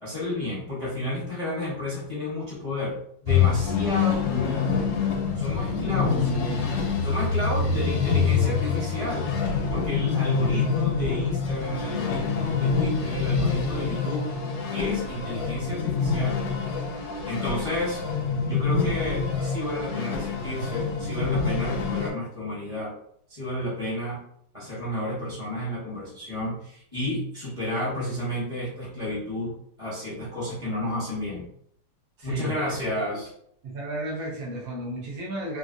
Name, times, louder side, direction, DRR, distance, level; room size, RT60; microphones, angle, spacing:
voice 1, 0.0-3.0 3.2-4.7 5.4-6.3 7.0-9.3 9.7-14.2 14.7-16.4 17.3-18.0 18.4-22.9 23.3-24.2 24.5-31.5 32.2-33.3, left 1 dB, 35° left, -7 dB, 0.5 m, -31 dB
sound 1, 3.3-22.1, left 5 dB, 80° left, 1.4 m, -26 dB
voice 2, 6.3-6.6 7.6-7.9 24.5-24.7 32.2-33.2 33.6-35.6, right 1 dB, 65° right, -3 dB, 1.1 m, -35 dB
3.1 x 2.5 x 2.5 m, 0.68 s
omnidirectional pair, 2.0 m